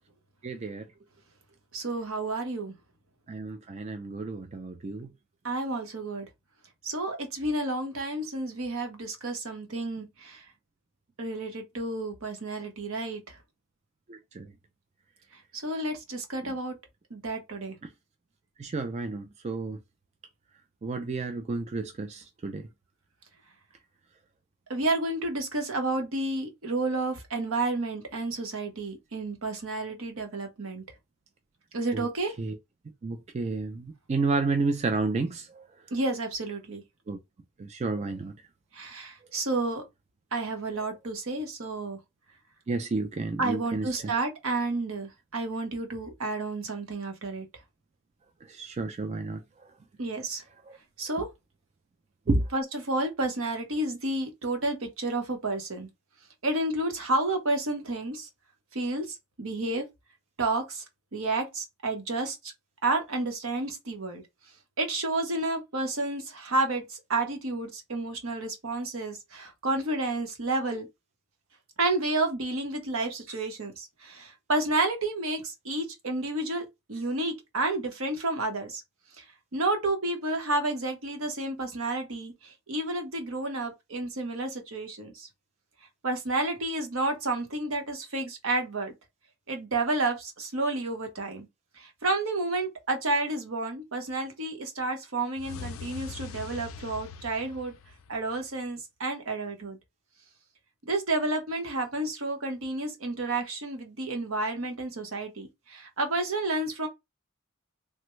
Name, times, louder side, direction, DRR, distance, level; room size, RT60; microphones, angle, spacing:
voice 1, 0.4-0.8 3.3-5.1 14.1-14.5 18.6-19.8 20.8-22.6 31.9-32.0 32.4-32.5 33.0-35.6 37.1-37.2 37.6-38.3 42.7-43.9 48.5-49.4 52.3-52.5, right 3 dB, 30° right, 0.3 m, -31 dB
voice 2, 1.7-2.7 5.4-6.3 6.8-10.4 11.2-13.4 15.5-16.8 17.1-17.8 24.7-30.8 31.7-32.3 35.9-36.8 38.7-39.8 40.3-42.0 43.4-47.5 50.0-50.4 51.0-51.3 52.5-55.9 56.4-58.3 58.7-59.8 60.4-60.8 61.1-62.5 62.8-64.2 64.8-70.9 71.8-78.8 79.2-79.3 79.5-85.3 86.0-88.9 89.5-91.5 91.8-97.7 98.1-99.8 100.8-106.9, right 2 dB, 70° right, 0.9 m, -30 dB
sound 1, 95.4-98.5, left 5 dB, 70° left, 0.4 m, -42 dB
3.3 x 2.2 x 3.0 m
head